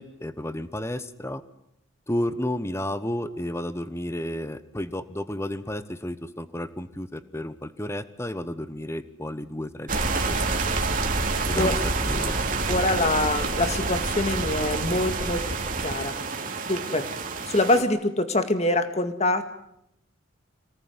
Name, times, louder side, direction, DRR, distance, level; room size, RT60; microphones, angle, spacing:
voice 1, 0.0-1.4 2.1-10.4 11.5-11.8 12.1-12.4, left 1 dB, 15° left, 13 dB, 1.1 m, -32 dB
sound 1, 9.9-17.8, right 3 dB, 40° right, 2.7 m, -27 dB
voice 2, 12.7-15.4 15.8-16.1 16.6-17.1 17.5-19.4, left 2 dB, 30° left, 9 dB, 2.1 m, -24 dB
26.0 x 18.5 x 9.7 m, 0.79 s
head